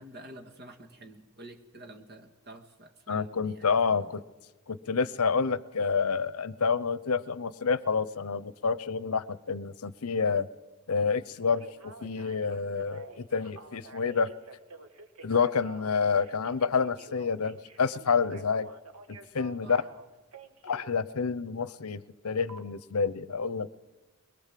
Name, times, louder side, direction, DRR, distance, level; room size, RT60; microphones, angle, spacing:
voice 1, 0.0-4.1 19.6-19.9, right 1 dB, 50° right, 6 dB, 2.0 m, -49 dB
voice 2, 3.1-4.2 4.7-10.5 10.9-11.6 12.0-14.3 15.2-18.7 19.3-19.8 20.6-23.8, left 5 dB, 70° left, 17 dB, 0.7 m, -28 dB
Telephone, 11.3-20.9 22.5-22.6, right 4 dB, 70° right, 1.7 m, -49 dB
22.0 x 21.5 x 7.6 m, 1.2 s
head